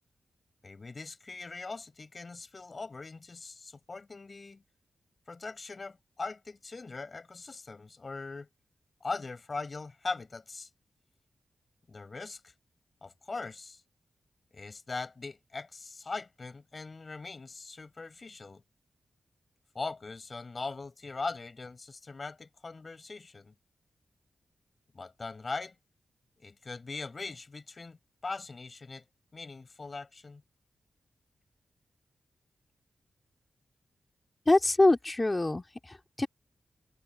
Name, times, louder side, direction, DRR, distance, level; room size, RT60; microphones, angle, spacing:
voice 1, 0.6-4.6 5.3-8.5 9.0-10.7 11.9-12.5 13.0-13.8 14.5-18.6 19.7-23.5 24.9-25.8 26.4-28.0 28.2-29.0 29.3-30.4, left 3 dB, 45° left, 8.0 m, -40 dB
voice 2, 34.5-36.3, left 2 dB, 25° left, 3.6 m, -25 dB
cardioid pair, 70°, 0 cm